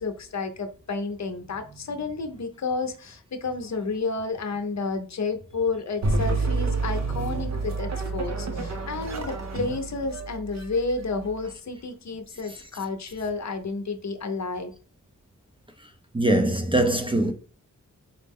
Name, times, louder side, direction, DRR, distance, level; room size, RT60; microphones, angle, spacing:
voice 1, 0.0-14.7, left 4 dB, 55° left, 0.6 m, -31 dB
sound 1, 6.0-11.5, right 3 dB, 55° right, 0.6 m, -29 dB
voice 2, 16.1-17.3, right 1 dB, 15° right, 0.4 m, -22 dB
4.0 x 2.1 x 3.5 m
wide cardioid pair, 85°, 33 cm